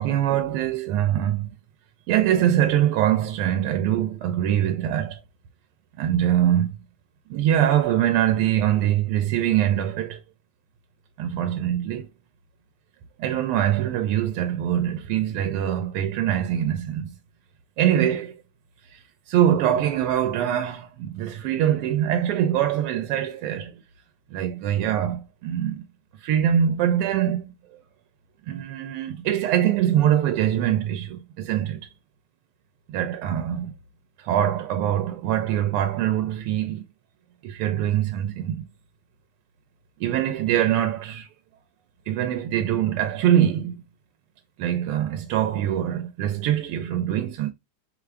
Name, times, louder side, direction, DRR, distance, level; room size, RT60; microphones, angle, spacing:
voice 1, 0.0-1.5 2.1-5.2 6.0-6.8 7.3-10.2 11.2-12.1 13.2-17.2 17.8-18.4 18.9-19.0 19.3-23.8 24.3-25.8 26.2-27.5 28.5-31.9 32.9-33.7 34.2-36.8 37.4-38.6 40.0-41.3 42.1-43.7 44.6-47.5, right 11 dB, 90° right, 1.6 m, -23 dB
5.2 x 2.5 x 3.3 m
omnidirectional pair, 2.4 m